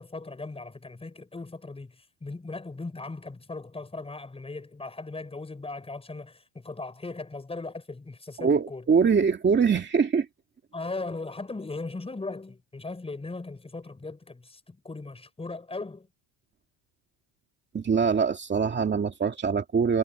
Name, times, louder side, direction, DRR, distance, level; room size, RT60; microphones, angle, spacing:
voice 1, 0.0-8.9 10.7-16.1, left 3 dB, 15° left, 4.9 m, -38 dB
voice 2, 8.4-10.3 17.7-20.0, right 6 dB, 25° right, 2.3 m, -23 dB
cardioid pair, 130°, 42 cm